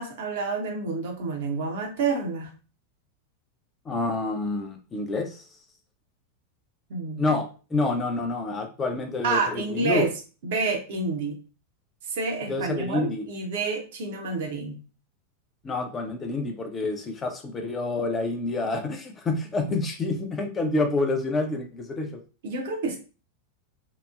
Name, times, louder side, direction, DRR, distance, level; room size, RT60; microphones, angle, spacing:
voice 1, 0.0-2.5 6.9-7.3 7.7-7.8 9.2-10.1 10.4-11.4 12.0-14.8 22.4-23.0, right 4 dB, 55° right, 2 dB, 0.7 m, -29 dB
voice 2, 3.9-5.4 7.2-10.1 12.5-13.2 15.6-22.2, left 3 dB, 20° left, 5 dB, 0.5 m, -28 dB
2.9 x 2.0 x 2.3 m, 0.34 s
figure-of-eight pair, 90°, 0 cm